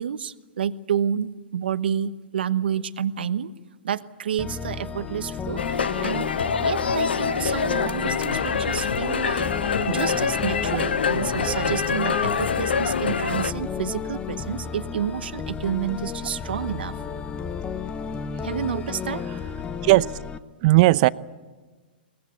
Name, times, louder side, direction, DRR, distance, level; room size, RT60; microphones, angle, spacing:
voice 1, 0.0-3.5 3.8-6.3 6.6-9.5 9.9-17.0 18.4-19.2, right 8 dB, 75° right, 1.1 m, -29 dB
sound 1, 4.4-20.4, left 6 dB, 20° left, 1.1 m, -33 dB
sound 2, 5.6-13.5, left 6 dB, 85° left, 1.0 m, -25 dB
voice 2, 20.6-21.1, right 19 dB, 50° right, 0.7 m, -17 dB
23.0 x 19.5 x 8.2 m
hypercardioid pair, 120°, 5 cm